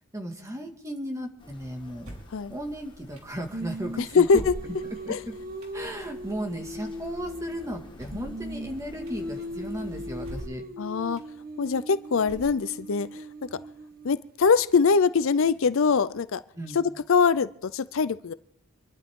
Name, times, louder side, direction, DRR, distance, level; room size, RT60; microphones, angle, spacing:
voice 1, 0.1-2.2 2.5-4.7 5.1-5.2 5.7-10.7 16.5-16.8, right 1 dB, 15° right, 3 dB, 2.0 m, -36 dB
sound 1, 1.4-10.5, equal, 20° left, 1.6 m, -49 dB
sound 2, 2.0-2.4 3.2-3.3 4.3-5.0 5.6-5.8 7.9-8.4 9.1-9.2 10.2-10.7 11.2-11.3 12.2-12.8, equal, 70° right, 4.4 m, -41 dB
Singing, 3.5-7.8 8.1-14.1, equal, 45° right, 1.2 m, -39 dB
voice 2, 4.0-4.5 5.1-5.2 10.8-11.2 11.6-13.2 13.5-13.6 14.0-16.4 16.7-16.8 17.1-18.3, left 5 dB, 60° left, 15 dB, 0.5 m, -23 dB
26.0 x 12.0 x 3.7 m, 0.66 s
head